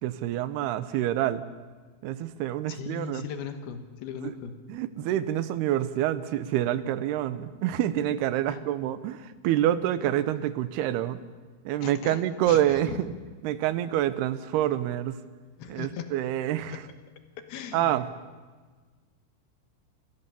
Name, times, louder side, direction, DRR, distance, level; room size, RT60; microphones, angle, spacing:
voice 1, 0.0-1.4 2.0-3.2 4.2-4.3 4.7-11.2 11.7-13.1 13.4-15.2 15.7-16.8 17.7-18.0, right 12 dB, 85° right, 14 dB, 2.9 m, -27 dB
voice 2, 2.7-4.6 8.5-8.6 11.8-13.0 15.6-16.1 16.7-16.8 17.5-18.1, left 8 dB, 75° left, 8 dB, 3.2 m, -38 dB
28.5 x 14.0 x 6.9 m, 1.4 s
omnidirectional pair, 4.5 m